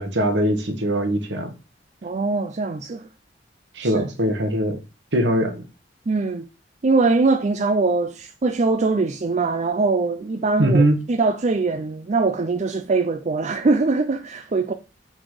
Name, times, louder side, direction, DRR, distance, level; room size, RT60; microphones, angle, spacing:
voice 1, 0.0-1.5 3.7-4.8 5.1-5.6 10.6-11.0, right 1 dB, 75° right, 1.5 m, -21 dB
voice 2, 2.0-3.1 3.8-4.0 6.1-6.4 6.8-14.7, right 3 dB, 40° right, 0.5 m, -22 dB
6.0 x 4.1 x 4.9 m
head